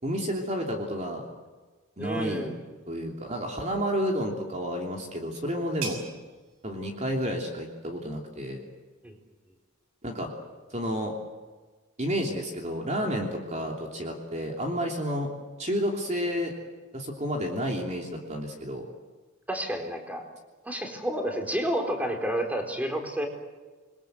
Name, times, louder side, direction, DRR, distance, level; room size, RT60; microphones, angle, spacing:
voice 1, 0.0-1.2 2.0-2.5 2.9-6.0 6.6-8.6 10.0-10.3 10.7-11.1 12.0-15.3 15.6-16.5 16.9-18.9, equal, 30° right, 1 dB, 3.1 m, -30 dB
voice 2, 2.0-2.6 9.0-9.1 19.5-20.2 20.6-23.3, equal, 5° right, 3 dB, 4.2 m, -30 dB
sound 1, 4.5-9.9, right 5 dB, 65° right, 6.4 m, -45 dB
28.0 x 22.5 x 8.0 m, 1.3 s
head